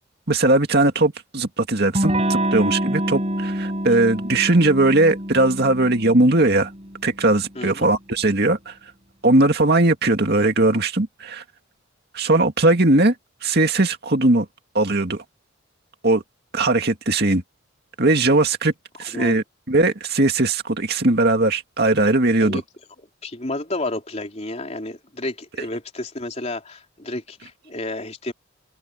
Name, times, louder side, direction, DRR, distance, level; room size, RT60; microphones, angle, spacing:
voice 1, 0.3-6.7 7.0-8.7 9.2-11.4 12.1-13.1 13.4-14.5 14.7-15.2 16.0-16.2 16.5-17.4 18.0-18.7 19.0-22.6, right 2 dB, 50° right, 2.2 m, -19 dB
Electric guitar / Strum, 1.9-7.3, right 1 dB, 30° right, 6.4 m, -26 dB
voice 2, 7.6-7.9 19.1-19.4 22.4-22.6 23.2-28.3, left 2 dB, 30° left, 3.8 m, -31 dB
open air
head